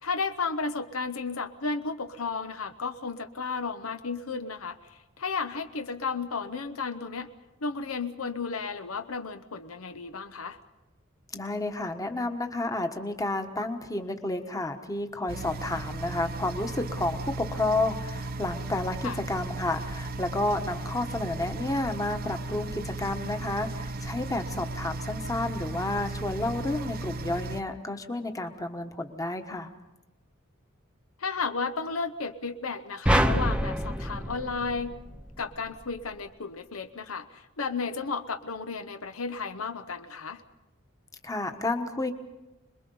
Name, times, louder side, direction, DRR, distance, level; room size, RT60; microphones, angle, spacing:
voice 1, 0.0-7.3 7.6-10.6 19.0-19.2 31.2-34.9 35.4-40.4, left 4 dB, 80° left, 9 dB, 1.0 m, -33 dB
voice 2, 11.3-29.7 41.2-42.1, left 2 dB, 15° left, 6 dB, 1.3 m, -31 dB
sound 1, 15.3-27.6, right 2 dB, 45° right, 0.7 m, -36 dB
sound 2, 33.1-35.5, equal, 5° right, 0.7 m, -26 dB
26.5 x 21.5 x 5.5 m, 1.0 s
head